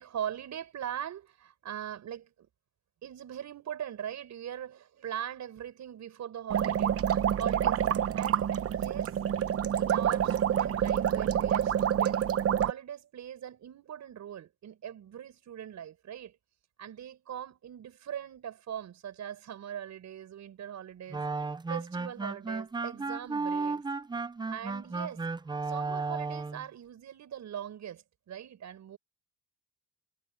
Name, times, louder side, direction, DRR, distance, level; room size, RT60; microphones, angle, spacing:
voice 1, 0.0-2.5 3.0-7.0 7.4-7.8 8.1-9.1 9.7-12.3 12.6-16.4 16.8-21.2 21.7-23.8 24.5-25.2 25.7-29.0, right 10 dB, 65° right, 6.6 m, -41 dB
sound 1, 6.5-12.7, right 9 dB, 50° right, 0.9 m, -27 dB
sound 2, 21.1-26.6, right 4 dB, 15° right, 0.6 m, -34 dB
cardioid pair, 90°, 30 cm